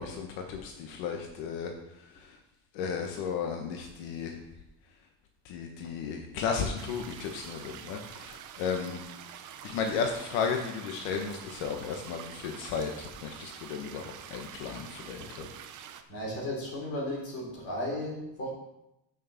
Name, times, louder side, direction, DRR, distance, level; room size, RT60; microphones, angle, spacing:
voice 1, 0.0-1.7 2.0-2.4 2.7-4.4 5.4-9.0 9.6-15.5, left 6 dB, 75° left, 3 dB, 1.3 m, -34 dB
sound 1, 6.8-16.0, right 9 dB, 40° right, 0.7 m, -46 dB
voice 2, 16.1-18.5, left 1 dB, 30° left, -3 dB, 3.9 m, -35 dB
6.6 x 6.6 x 7.1 m, 0.87 s
cardioid pair, 175°, 47 cm